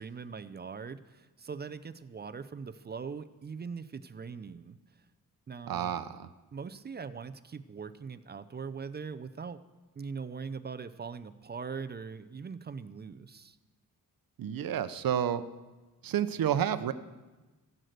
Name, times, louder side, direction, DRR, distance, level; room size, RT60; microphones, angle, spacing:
voice 1, 0.0-4.8 5.5-6.0 6.5-9.6 10.0-13.6, right 5 dB, 30° right, 12 dB, 0.4 m, -41 dB
voice 2, 5.7-6.3 14.4-15.4 16.0-16.9, right 9 dB, 70° right, 12 dB, 0.7 m, -30 dB
15.0 x 6.6 x 7.8 m, 1.2 s
wide cardioid pair, 160°, 36 cm